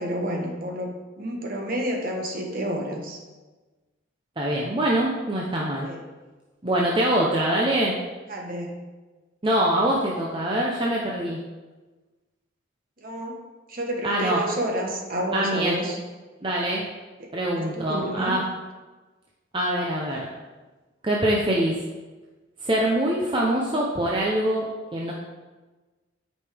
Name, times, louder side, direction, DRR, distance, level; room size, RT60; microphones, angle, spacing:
voice 1, 0.0-3.2 5.8-6.0 6.8-6.9 8.3-8.7 13.0-13.3 13.7-16.0 17.2-17.3 17.5-18.4, equal, 45° right, 0 dB, 1.2 m, -30 dB
voice 2, 4.4-5.9 6.6-8.0 9.4-11.4 14.0-14.4 15.3-15.7 16.4-16.8 17.3-18.4 19.5-20.3 21.0-21.8 22.6-25.1, right 1 dB, 25° right, -3 dB, 0.7 m, -24 dB
9.7 x 5.4 x 3.4 m, 1.2 s
head